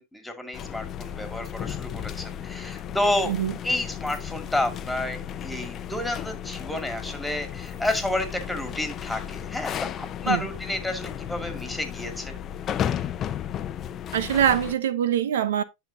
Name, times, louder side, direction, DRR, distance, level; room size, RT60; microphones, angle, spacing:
voice 1, 0.0-3.3 3.6-12.4, left 1 dB, 5° left, 2.2 m, -30 dB
sound 1, 0.5-14.8, left 9 dB, 35° left, 0.6 m, -34 dB
voice 2, 14.1-15.6, right 9 dB, 75° right, 0.9 m, -23 dB
10.5 x 5.8 x 2.7 m
hypercardioid pair, 105°, 0 cm